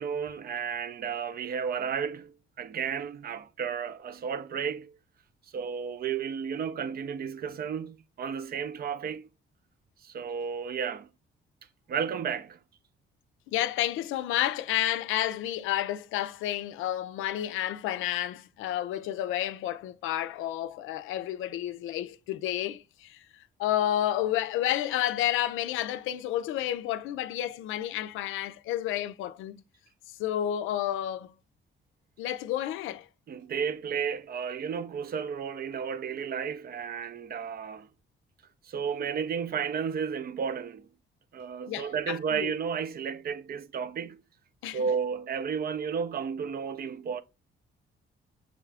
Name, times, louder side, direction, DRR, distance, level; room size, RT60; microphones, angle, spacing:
voice 1, 0.0-4.9 5.5-9.3 10.0-11.1 11.9-12.6 33.3-37.9 38.6-40.9 41.3-44.2 44.7-47.2, right 7 dB, 50° right, 0.5 m, -33 dB
voice 2, 13.5-23.2 23.6-29.6 30.1-31.3 32.2-33.1 41.7-42.5 44.6-44.8, left 12 dB, 90° left, 0.4 m, -30 dB
6.2 x 2.4 x 3.3 m
cardioid pair, 90°, 20 cm